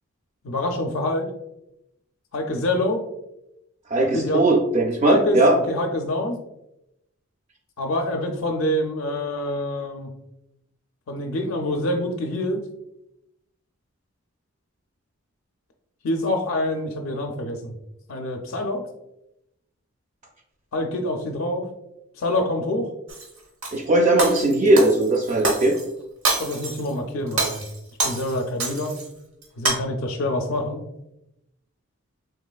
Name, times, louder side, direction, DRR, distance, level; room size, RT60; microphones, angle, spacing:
voice 1, 0.4-1.3 2.3-3.0 4.1-4.5 5.0-6.4 7.8-10.1 11.1-12.6 16.0-17.7 18.1-18.8 20.7-21.6 22.2-22.9 26.4-27.6 28.0-29.0 29.6-30.8, left 1 dB, 65° left, 3 dB, 0.4 m, -26 dB
voice 2, 3.9-5.6 23.7-25.8, right 2 dB, 30° right, -1 dB, 0.3 m, -18 dB
Shatter, 23.1-23.8 24.2-25.8 26.2-26.9 27.3-29.1 29.4-29.7, right 3 dB, 80° right, 0.8 m, -26 dB
3.7 x 3.0 x 2.2 m, 0.84 s
head